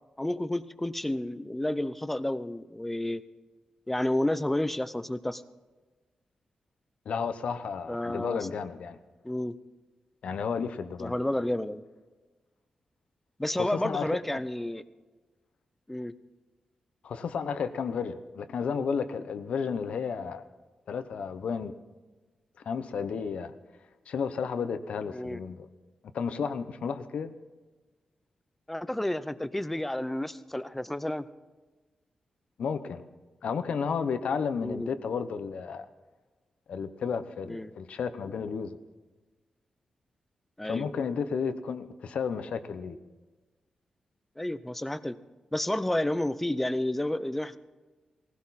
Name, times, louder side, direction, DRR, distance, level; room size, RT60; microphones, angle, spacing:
voice 1, 0.2-3.2 3.9-5.4 7.9-8.4 9.2-9.6 11.0-11.8 13.4-14.8 15.9-16.1 25.1-25.4 28.7-31.3 34.6-34.9 37.5-37.7 40.6-40.9 44.4-45.2 45.5-47.6, left 1 dB, 10° left, 14 dB, 0.6 m, -30 dB
voice 2, 7.0-9.0 10.2-11.2 13.6-14.2 17.0-20.4 20.9-21.7 22.6-23.5 24.1-25.7 26.1-27.3 32.6-33.0 33.4-35.9 36.7-38.8 40.6-43.0, left 6 dB, 80° left, 11 dB, 0.9 m, -32 dB
19.0 x 16.0 x 4.2 m, 1.3 s
wide cardioid pair, 100°, 2 cm